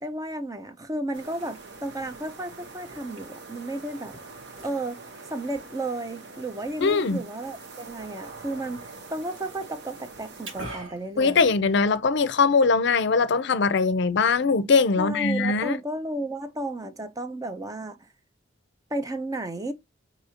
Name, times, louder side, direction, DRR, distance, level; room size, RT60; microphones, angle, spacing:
voice 1, 0.0-4.1 4.6-5.0 5.3-11.4 15.0-18.1 18.9-19.7, right 1 dB, 20° right, 0.5 m, -33 dB
sound 1, 1.1-10.7, right 3 dB, 60° right, 0.9 m, -44 dB
Liquid, 1.1-12.1, right 1 dB, 85° right, 1.4 m, -48 dB
voice 2, 6.8-7.2 11.2-15.8, left 4 dB, 60° left, 0.5 m, -21 dB
6.2 x 2.7 x 2.8 m
head